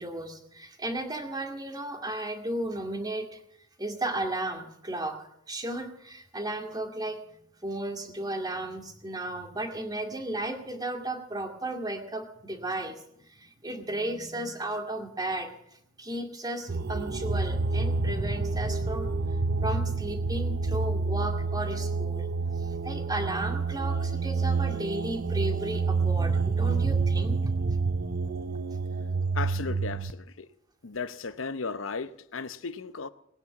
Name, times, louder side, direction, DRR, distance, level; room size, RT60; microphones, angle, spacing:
voice 1, 0.0-3.4 3.8-13.0 13.2-15.5 16.0-19.1 19.6-22.3 22.6-27.4, right 1 dB, 20° right, 2.2 m, -34 dB
sound 1, 16.7-30.1, right 4 dB, 55° right, 0.7 m, -28 dB
voice 2, 29.3-30.5 30.8-33.1, left 4 dB, 85° left, 0.9 m, -35 dB
20.0 x 9.8 x 7.3 m
head